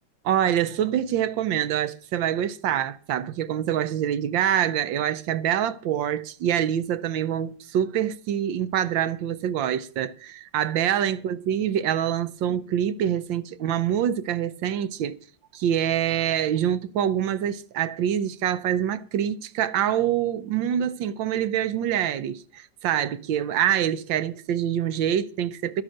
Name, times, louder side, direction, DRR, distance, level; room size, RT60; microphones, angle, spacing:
voice 1, 0.2-15.2 15.5-25.8, right 10 dB, 80° right, 1.5 m, -25 dB
11.5 x 9.9 x 6.5 m
omnidirectional pair, 2.0 m